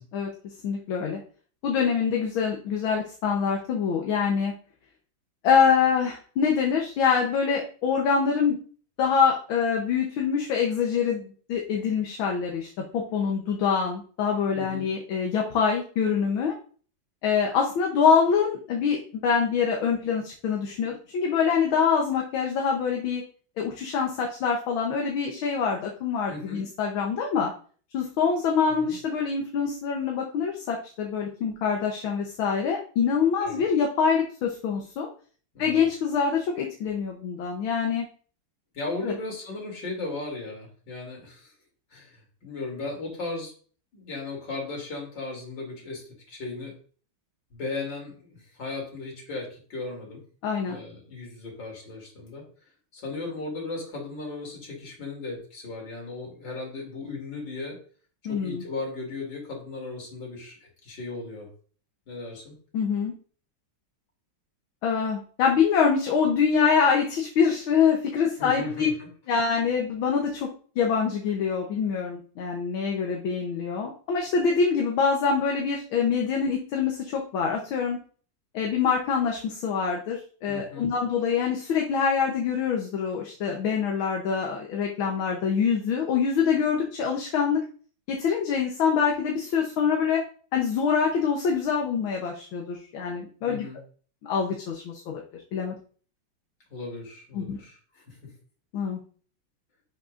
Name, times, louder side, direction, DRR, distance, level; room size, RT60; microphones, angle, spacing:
voice 1, 0.6-1.2 1.6-4.5 5.4-8.6 9.0-16.5 17.2-23.2 23.6-27.5 27.9-35.1 35.6-38.1 39.0-39.1 50.4-50.8 58.3-58.6 62.7-63.1 64.8-68.9 69.3-70.5 70.8-78.0 78.5-87.6 88.1-90.2 90.5-93.7 94.2-95.2 95.5-95.7 97.3-97.6 98.7-99.0, left 6 dB, 80° left, 0 dB, 1.8 m, -25 dB
voice 2, 14.5-14.9 26.3-26.7 28.7-29.0 33.4-33.6 35.5-35.8 38.7-41.5 41.9-43.5 43.9-46.7 47.5-50.2 50.7-52.4 52.9-57.8 58.3-61.5 62.1-62.6 68.4-69.1 80.5-80.9 93.4-93.8 96.7-98.2, left 3 dB, 65° left, 0 dB, 3.4 m, -36 dB
10.5 x 6.4 x 2.5 m, 0.43 s
omnidirectional pair, 2.2 m